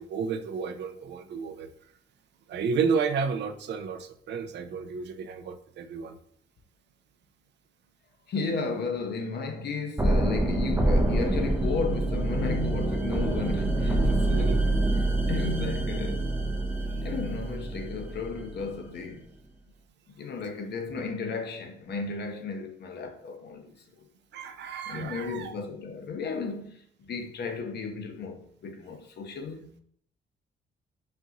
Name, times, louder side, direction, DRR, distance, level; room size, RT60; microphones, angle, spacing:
voice 1, 0.0-1.7 2.5-6.2 14.3-14.6 24.3-25.5, right 5 dB, 60° right, 0.5 m, -31 dB
voice 2, 8.3-16.3 17.0-19.2 20.1-23.7 24.9-29.7, left 4 dB, 55° left, 0.8 m, -34 dB
sound 1, 10.0-18.8, right 1 dB, 10° right, 0.6 m, -26 dB
5.3 x 2.6 x 2.9 m
cardioid pair, 90°, 20 cm